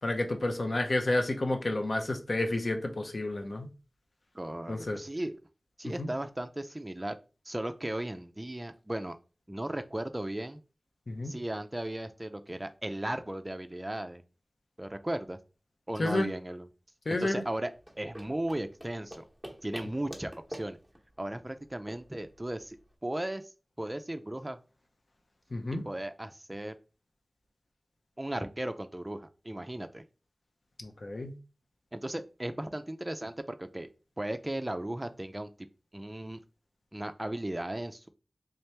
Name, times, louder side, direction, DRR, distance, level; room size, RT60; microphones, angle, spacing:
voice 1, 0.0-3.7 4.7-5.0 5.8-6.1 11.1-11.3 16.0-16.3 17.1-17.4 25.5-25.8 30.8-31.4, left 2 dB, 60° left, 4 dB, 0.7 m, -30 dB
voice 2, 4.3-5.3 5.8-7.2 7.5-9.2 9.5-10.6 11.2-14.2 14.8-15.4 15.9-16.7 17.1-17.7 18.0-19.2 19.6-20.8 21.2-22.8 23.0-23.4 23.8-24.6 25.8-26.7 28.2-30.0 31.9-33.9 34.2-35.5 35.9-36.4 36.9-38.1, right 1 dB, 20° right, 8 dB, 0.4 m, -36 dB
sound 1, 17.7-22.9, equal, 5° left, 1.0 m, -47 dB
3.6 x 2.9 x 3.3 m, 0.33 s
wide cardioid pair, 75°, 0 cm